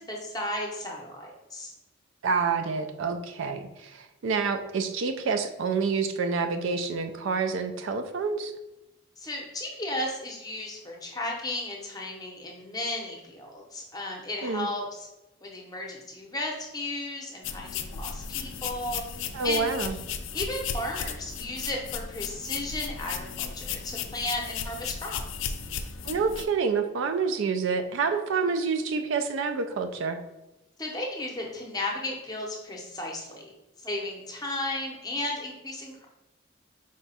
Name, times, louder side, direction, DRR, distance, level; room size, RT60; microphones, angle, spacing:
voice 1, 0.0-1.7 9.2-15.1 15.4-19.0 19.4-19.7 20.3-25.5 30.8-33.5 33.8-36.0, left 1 dB, 20° left, -1 dB, 0.7 m, -34 dB
voice 2, 2.2-8.5 14.4-14.7 19.3-20.0 26.0-30.2, right 5 dB, 70° right, 8 dB, 0.3 m, -28 dB
sound 1, 17.4-26.5, left 7 dB, 65° left, 0.3 m, -35 dB
4.9 x 2.3 x 4.1 m, 0.96 s
head